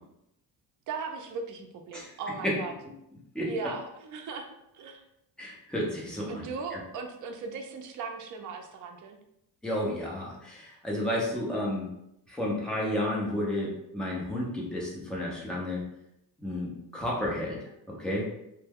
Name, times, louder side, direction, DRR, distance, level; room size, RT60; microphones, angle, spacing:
voice 1, 0.9-2.7 3.5-4.5 4.7-5.0 6.3-9.2, right 4 dB, 50° right, 4 dB, 0.5 m, -38 dB
voice 2, 1.9-2.5 3.3-3.5 5.4-6.4 6.7-6.8 9.6-11.9 12.3-15.8 16.4-17.6 17.9-18.3, left 1 dB, ahead, -4 dB, 0.5 m, -32 dB
3.2 x 2.2 x 3.4 m, 0.81 s
cardioid pair, 180°, 39 cm